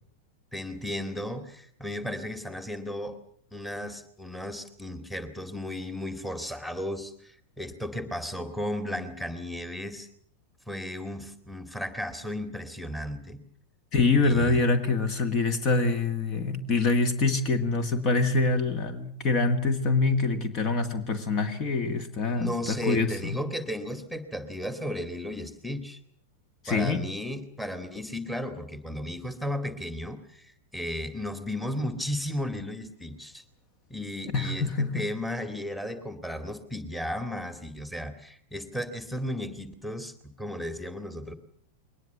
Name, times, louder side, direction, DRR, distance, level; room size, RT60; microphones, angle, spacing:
voice 1, 0.5-3.2 3.5-10.1 10.7-13.4 14.2-14.6 22.3-26.0 26.7-33.4 33.9-41.3, left 1 dB, 5° left, 9 dB, 2.2 m, -35 dB
voice 2, 13.9-23.4 26.6-27.0 34.3-35.0, left 3 dB, 35° left, 10 dB, 2.0 m, -25 dB
22.0 x 19.5 x 8.0 m, 0.62 s
figure-of-eight pair, 90°, 0 cm